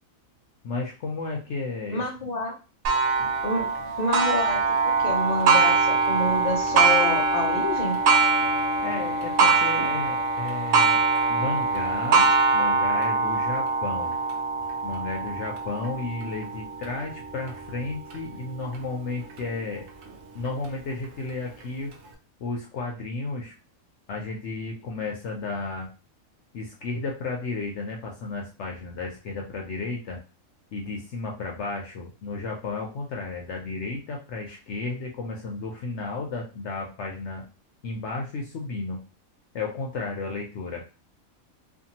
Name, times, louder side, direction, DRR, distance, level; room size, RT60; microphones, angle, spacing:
voice 1, 0.6-2.4 8.8-11.0 11.3-14.2 14.8-19.9 20.3-21.9 22.4-23.5 24.1-25.9 26.5-30.2 30.7-37.4 37.8-39.0 39.5-40.8, left 3 dB, 65° left, 0 dB, 0.8 m, -33 dB
voice 2, 1.9-2.6 3.4-3.7 4.0-8.0, left 2 dB, 85° left, -1 dB, 0.3 m, -28 dB
Clock, 2.9-18.2 18.8-18.9 19.4-19.5 20.5-20.6, right 4 dB, 75° right, 1.0 m, -23 dB
2.6 x 2.5 x 2.7 m, 0.33 s
omnidirectional pair, 1.4 m